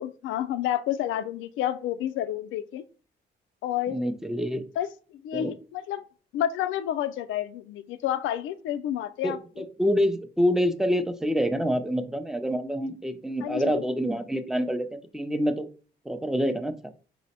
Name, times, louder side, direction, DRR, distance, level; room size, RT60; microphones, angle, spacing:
voice 1, 0.0-2.8 3.6-4.0 4.8-4.9 5.2-6.0 6.3-9.4 13.4-13.8, left 11 dB, 80° left, 12 dB, 0.4 m, -29 dB
voice 2, 3.9-4.6 5.3-5.5 9.2-15.7 16.0-16.7, equal, ahead, 9 dB, 0.5 m, -27 dB
4.9 x 2.0 x 4.1 m, 0.39 s
cardioid pair, 90°, 20 cm